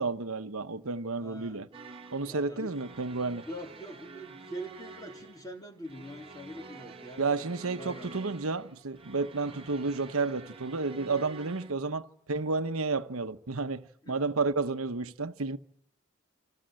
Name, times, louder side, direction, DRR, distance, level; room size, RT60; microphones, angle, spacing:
voice 1, 0.0-1.7 2.1-3.4 7.2-15.6, right 3 dB, 75° right, 1.1 m, -31 dB
voice 2, 1.2-1.7 2.3-2.7 3.5-7.2 7.8-8.1 14.0-14.2, right 1 dB, 15° left, 3.4 m, -43 dB
sound 1, 1.7-11.7, right 3 dB, 25° right, 1.6 m, -48 dB
28.5 x 25.0 x 7.8 m
head